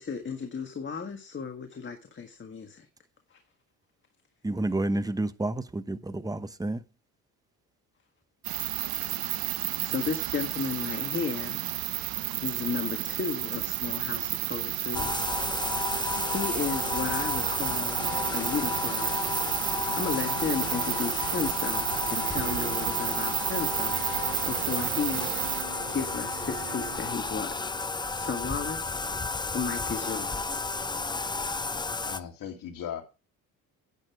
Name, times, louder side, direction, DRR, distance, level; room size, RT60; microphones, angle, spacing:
voice 1, 0.0-2.9 3.3-3.4 9.0-11.6 12.4-15.1 16.2-19.2 19.7-25.3 25.9-27.5 28.1-29.0 29.5-30.6, left 5 dB, 30° left, 1.6 m, -34 dB
voice 2, 4.4-6.8, right 2 dB, 10° right, 1.0 m, -30 dB
sound 1, 8.4-25.6, right 15 dB, 60° right, 1.0 m, -32 dB
Bathtub (filling or washing), 14.9-32.2, left 3 dB, 10° left, 0.6 m, -32 dB
sound 2, 18.0-27.8, right 8 dB, 80° right, 3.7 m, -43 dB
voice 3, 32.0-33.0, left 9 dB, 55° left, 2.7 m, -37 dB
10.5 x 9.1 x 4.7 m
supercardioid pair, 90°, 40 cm